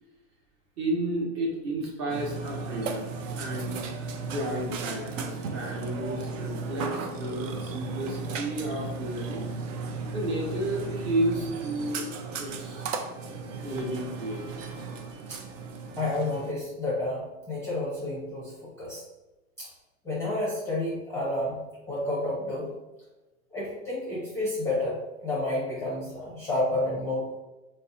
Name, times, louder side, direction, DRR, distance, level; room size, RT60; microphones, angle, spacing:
voice 1, 0.8-3.8 4.2-9.5 10.1-12.1 12.4-12.8 13.6-14.9, right 1 dB, 30° right, -2 dB, 0.8 m, -32 dB
Burping eructation, 2.1-16.5, right 4 dB, 65° right, 0.5 m, -35 dB
voice 2, 16.0-19.0 19.6-19.7 20.0-22.7 23.5-27.3, left 2 dB, 5° left, -6 dB, 0.6 m, -30 dB
4.0 x 2.1 x 2.5 m, 1.1 s
supercardioid pair, 140°, 40 cm